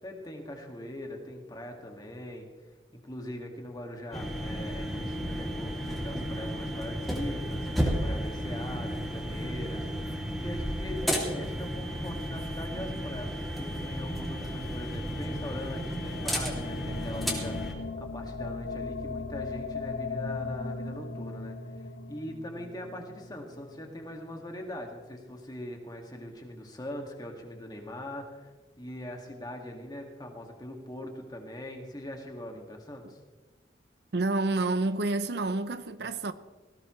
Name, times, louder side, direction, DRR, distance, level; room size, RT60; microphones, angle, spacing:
voice 1, 0.0-2.5 3.0-21.6 22.1-33.2, left 1 dB, 20° left, 2.2 m, -41 dB
sound 1, 4.1-17.7, equal, ahead, 2.8 m, -33 dB
sound 2, 14.1-24.9, left 3 dB, 70° left, 1.2 m, -40 dB
voice 2, 34.1-36.3, right 2 dB, 60° right, 0.7 m, -28 dB
19.0 x 16.0 x 3.3 m
head